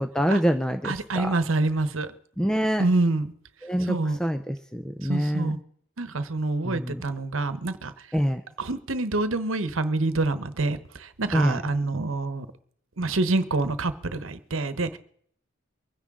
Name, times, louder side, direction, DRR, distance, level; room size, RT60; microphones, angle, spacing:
voice 1, 0.0-1.4 2.4-2.8 3.6-5.5 6.6-7.0 8.1-8.4 11.3-11.6, equal, 5° left, 7 dB, 0.5 m, -26 dB
voice 2, 0.8-2.1 2.8-3.3 3.8-4.2 5.1-5.6 6.0-7.9 8.6-12.5 13.0-15.0, right 2 dB, 80° right, 12 dB, 1.0 m, -26 dB
24.0 x 10.0 x 3.7 m, 0.65 s
head